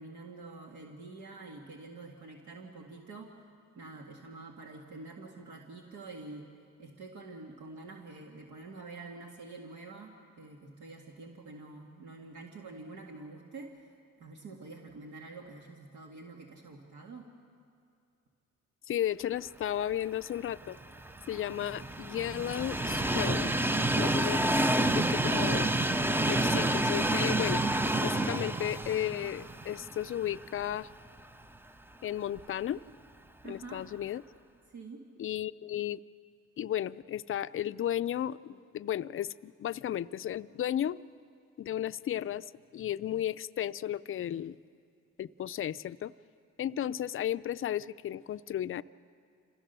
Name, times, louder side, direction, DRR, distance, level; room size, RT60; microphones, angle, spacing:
voice 1, 0.0-3.3 3.7-6.4 6.8-13.9 14.2-17.3 33.4-33.9 34.7-35.0, right 3 dB, 75° right, 0 dB, 2.0 m, -47 dB
voice 2, 18.9-20.8 21.3-23.5 24.0-24.4 24.7-25.7 26.3-27.6 28.0-30.9 32.0-32.8 33.4-34.2 35.2-36.0 36.6-41.0 41.6-42.5 42.7-44.6 45.2-46.1 46.6-48.8, left 11 dB, 45° left, 15 dB, 0.5 m, -34 dB
Train, 20.6-30.8 31.2-31.3 32.4-32.5, right 1 dB, 5° right, 0.6 m, -29 dB
27.0 x 16.0 x 6.8 m, 2.4 s
cardioid pair, 90°, 30 cm